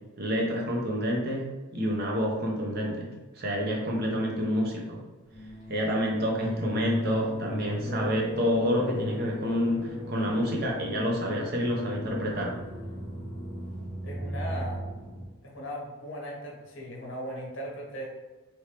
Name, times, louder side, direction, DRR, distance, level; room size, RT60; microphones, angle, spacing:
voice 1, 0.2-1.5 1.7-3.1 3.4-5.0 5.7-12.5, equal, 45° right, -2 dB, 0.7 m, -28 dB
sound 1, 5.3-15.2, equal, 5° left, 1.0 m, -36 dB
voice 2, 14.0-14.9 15.4-18.1, equal, 60° left, -2 dB, 0.9 m, -38 dB
3.0 x 2.9 x 3.3 m, 1.2 s
head